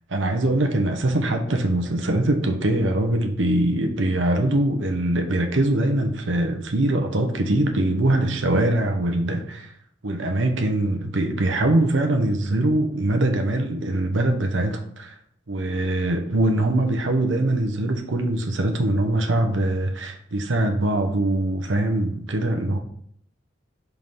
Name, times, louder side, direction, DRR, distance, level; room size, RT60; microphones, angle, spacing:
voice 1, 0.1-9.7 10.0-15.1 15.5-22.8, right 1 dB, 85° right, 4 dB, 0.9 m, -22 dB
5.5 x 4.6 x 5.5 m, 0.67 s
head